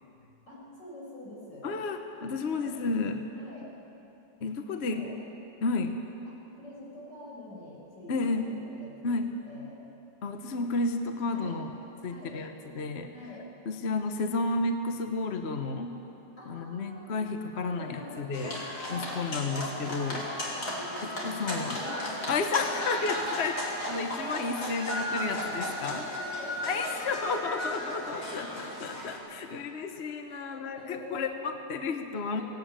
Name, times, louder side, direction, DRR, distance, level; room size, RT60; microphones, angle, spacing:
voice 1, 0.5-1.7 2.4-2.7 3.3-3.7 4.8-5.2 6.2-9.8 11.3-11.6 12.1-12.4 13.1-13.5 16.4-17.3 17.6-19.6 19.9-20.8 21.3-27.0 27.9-28.8 30.2-30.4 30.7-31.4 32.3-32.4, left 1 dB, 80° left, -5 dB, 6.7 m, -46 dB
voice 2, 1.6-3.2 4.4-5.1 5.6-6.0 8.1-8.5 9.0-9.3 10.2-11.7 12.0-13.1 13.7-16.0 16.5-18.5 18.9-20.2 21.2-21.8 22.3-23.6 23.9-26.0 26.6-32.4, left 3 dB, 45° left, 6 dB, 1.1 m, -32 dB
sound 1, 18.3-29.2, left 1 dB, 65° left, 3.7 m, -35 dB
18.0 x 17.5 x 8.9 m, 2.9 s
omnidirectional pair, 1.9 m